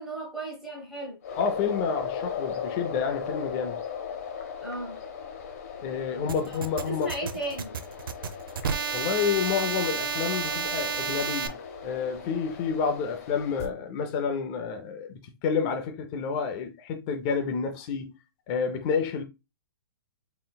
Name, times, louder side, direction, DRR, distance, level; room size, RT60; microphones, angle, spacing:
voice 1, 0.0-1.2 4.6-5.0 6.5-6.6 6.8-7.8, right 2 dB, 5° right, 0.8 m, -35 dB
sound 1, 1.2-13.7, left 7 dB, 40° left, 0.7 m, -38 dB
voice 2, 1.4-3.8 5.8-7.1 8.9-11.6 11.8-18.2 18.5-19.2, left 6 dB, 15° left, 0.4 m, -29 dB
sound 2, 6.3-11.5, right 6 dB, 70° right, 0.5 m, -31 dB
3.8 x 3.8 x 2.2 m
hypercardioid pair, 170°, 12 cm